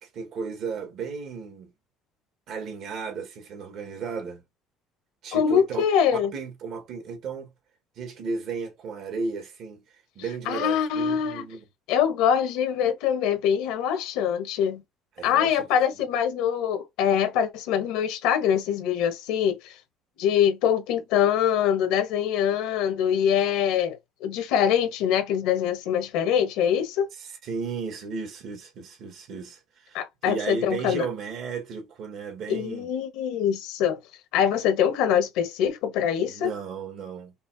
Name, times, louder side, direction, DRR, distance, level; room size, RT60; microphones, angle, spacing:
voice 1, 0.0-1.7 2.5-4.4 5.2-5.8 6.3-7.5 8.0-9.8 10.2-11.6 15.2-15.7 27.2-32.9 36.3-37.3, right 5 dB, 60° right, 1.7 m, -34 dB
voice 2, 5.3-6.3 10.5-11.4 11.9-14.8 15.2-19.7 20.2-27.1 29.9-31.1 32.5-34.0 34.3-36.5, left 9 dB, 85° left, 1.4 m, -24 dB
5.5 x 2.2 x 2.8 m
cardioid pair, 115°, 0 cm